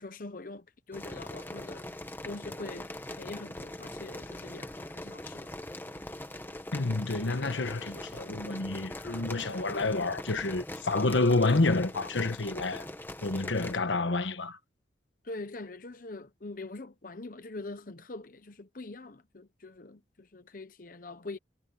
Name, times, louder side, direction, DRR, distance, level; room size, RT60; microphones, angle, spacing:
voice 1, 0.0-1.9 2.2-5.5 15.2-21.4, left 2 dB, 45° left, 0.9 m, -43 dB
sound 1, 0.9-13.8, left 1 dB, 10° left, 1.4 m, -42 dB
voice 2, 6.7-12.9 13.2-14.6, left 2 dB, 85° left, 1.2 m, -29 dB
head